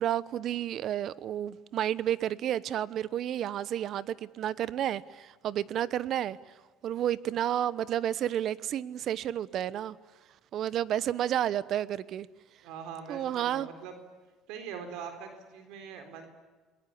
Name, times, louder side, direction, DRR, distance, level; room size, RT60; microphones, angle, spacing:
voice 1, 0.0-6.4 6.8-10.0 10.5-12.3 13.1-13.7, right 11 dB, 55° right, 1.0 m, -31 dB
voice 2, 12.6-14.0 14.5-16.3, right 7 dB, 80° right, 4.1 m, -42 dB
29.0 x 21.5 x 8.7 m
cardioid pair, 115°, 0 cm